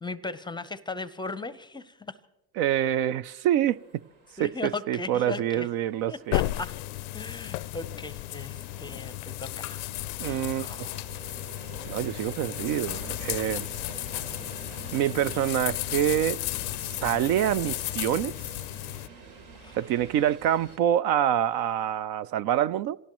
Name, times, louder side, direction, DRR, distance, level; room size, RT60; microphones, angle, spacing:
voice 1, 0.0-2.2 4.4-5.7 6.1-6.7 7.1-9.9 10.2-11.0 19.5-19.8, left 3 dB, 10° left, 0.6 m, -37 dB
voice 2, 2.6-3.8 4.4-6.4 10.2-10.7 11.9-13.7 14.9-16.4 16.8-18.3 19.7-23.0, right 11 dB, 55° right, 0.5 m, -26 dB
sound 1, 3.7-20.8, right 4 dB, 70° right, 3.2 m, -47 dB
sound 2, 6.3-19.1, left 20 dB, 85° left, 0.5 m, -34 dB
26.5 x 18.0 x 3.0 m
supercardioid pair, 105°, 44 cm